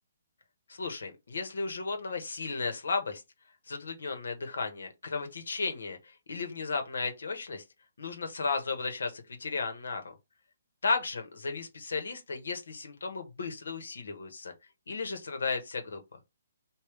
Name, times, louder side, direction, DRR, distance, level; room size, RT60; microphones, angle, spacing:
voice 1, 0.7-3.2 3.7-6.0 6.3-7.6 8.0-10.1 10.8-14.5 14.9-16.0, left 4 dB, 75° left, 1.3 m, -34 dB
5.1 x 2.6 x 3.3 m
hypercardioid pair, 180°, 0 cm